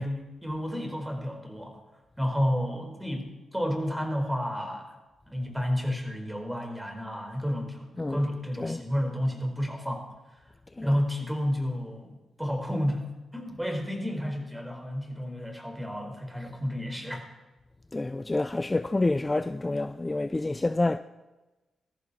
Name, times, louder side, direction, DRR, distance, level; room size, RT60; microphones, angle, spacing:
voice 1, 0.0-1.8 2.2-4.9 5.3-10.1 10.8-17.2, equal, 10° right, 4.6 m, -31 dB
voice 2, 17.9-21.0, left 2 dB, 25° left, 0.5 m, -28 dB
19.5 x 14.0 x 4.3 m
supercardioid pair, 50°, 0 cm